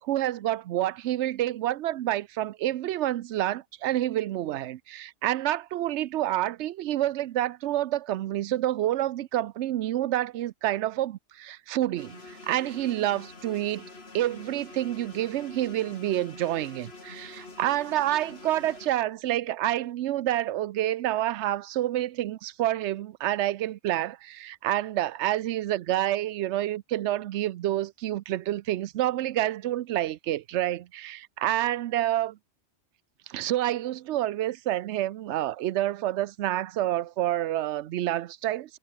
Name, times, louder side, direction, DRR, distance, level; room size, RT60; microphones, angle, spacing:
voice 1, 0.0-13.8 14.1-32.4 33.3-38.8, right 13 dB, 75° right, 0.9 m, -28 dB
sound 1, 12.0-18.9, left 3 dB, 60° left, 3.1 m, -46 dB
omnidirectional pair, 1.2 m